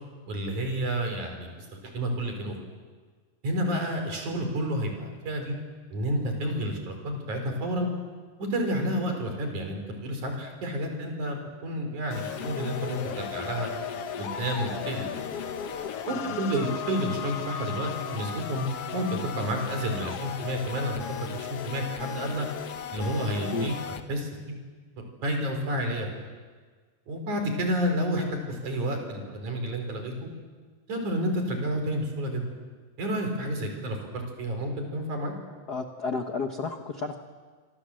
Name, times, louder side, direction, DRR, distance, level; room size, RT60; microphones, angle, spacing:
voice 1, 0.3-2.5 3.4-5.5 5.9-7.9 8.4-13.7 14.2-15.5 16.1-18.7 18.9-21.0 21.3-22.5 22.9-23.7 24.1-24.6 25.2-26.1 27.1-30.3 30.9-32.5 33.0-35.3, equal, 60° right, 4 dB, 5.8 m, -30 dB
sound 1, 12.1-24.0, left 8 dB, 60° left, 1.8 m, -36 dB
voice 2, 16.1-16.4 23.5-23.7 35.7-37.2, left 4 dB, 80° left, 5 dB, 0.8 m, -32 dB
27.0 x 24.5 x 7.8 m, 1.5 s
omnidirectional pair, 3.9 m